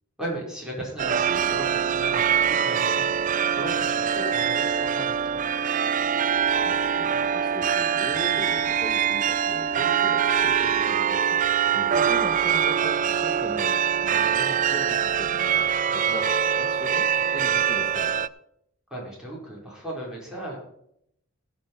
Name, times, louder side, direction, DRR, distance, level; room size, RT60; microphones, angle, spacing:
voice 1, 0.2-5.5 11.6-11.8 17.1-17.2 18.9-20.6, right 1 dB, 5° right, -5 dB, 5.1 m, -36 dB
sound 1, 1.0-18.3, right 8 dB, 35° right, 0.4 m, -23 dB
voice 2, 6.6-11.4 11.7-15.7 15.9-18.2, left 1 dB, 20° left, 2 dB, 1.1 m, -39 dB
17.0 x 5.8 x 5.4 m, 0.72 s
head